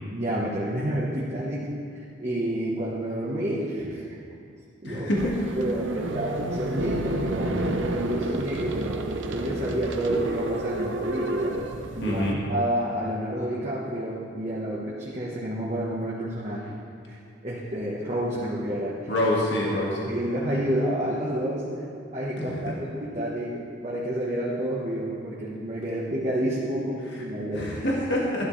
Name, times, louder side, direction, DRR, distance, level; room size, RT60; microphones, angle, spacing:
voice 1, 0.1-4.0 4.8-5.1 5.6-11.6 11.9-12.2 12.5-16.7 17.0-17.2 17.4-19.1 20.1-21.8 22.1-27.7, right 1 dB, 35° right, -6 dB, 1.2 m, -29 dB
voice 2, 4.8-5.2 12.0-12.4 19.1-20.0 22.4-22.7 27.5-28.5, left 1 dB, 65° left, -4 dB, 1.9 m, -26 dB
sound 1, 5.2-12.3, right 2 dB, 80° right, 0.8 m, -30 dB
15.0 x 11.5 x 3.3 m, 2.5 s
head